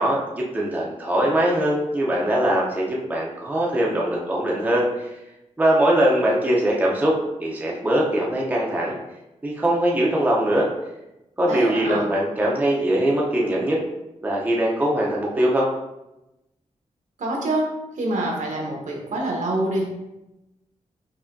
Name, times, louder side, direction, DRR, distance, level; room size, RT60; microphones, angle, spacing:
voice 1, 0.0-5.1 5.6-9.0 9.4-10.7 11.4-13.8 14.2-15.7, right 1 dB, 15° right, -3 dB, 0.6 m, -21 dB
voice 2, 11.5-12.0 17.2-17.7 17.9-20.0, right 1 dB, 80° right, -2 dB, 1.0 m, -26 dB
4.7 x 2.7 x 2.6 m, 0.94 s
wide cardioid pair, 170°, 13 cm